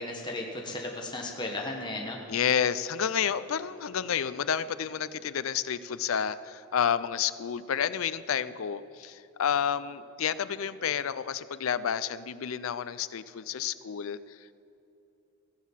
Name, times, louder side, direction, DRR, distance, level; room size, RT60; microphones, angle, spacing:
voice 1, 0.0-2.2, left 2 dB, 20° left, 0 dB, 1.2 m, -35 dB
voice 2, 2.3-14.4, left 8 dB, 85° left, 15 dB, 0.5 m, -30 dB
16.0 x 6.5 x 7.3 m, 2.9 s
head